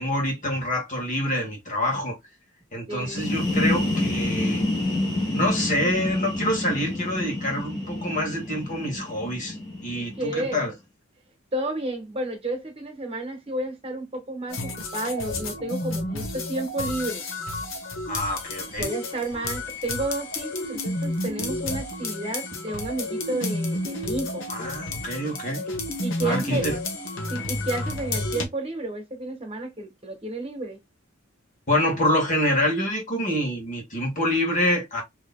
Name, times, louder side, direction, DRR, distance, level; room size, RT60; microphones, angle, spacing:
voice 1, 0.0-2.2 2.7-4.6 5.3-9.5 9.8-10.7 18.1-18.9 24.5-25.6 26.2-26.8 31.7-35.0, left 1 dB, 40° left, 1.6 m, -26 dB
voice 2, 2.8-3.2 9.9-10.6 11.5-17.2 18.7-24.4 26.0-26.7 27.3-30.8, right 2 dB, 30° right, 1.2 m, -31 dB
sound 1, 3.0-10.6, left 1 dB, 20° left, 1.8 m, -28 dB
sound 2, 14.5-28.4, left 2 dB, 70° left, 1.1 m, -31 dB
4.9 x 2.9 x 2.2 m
head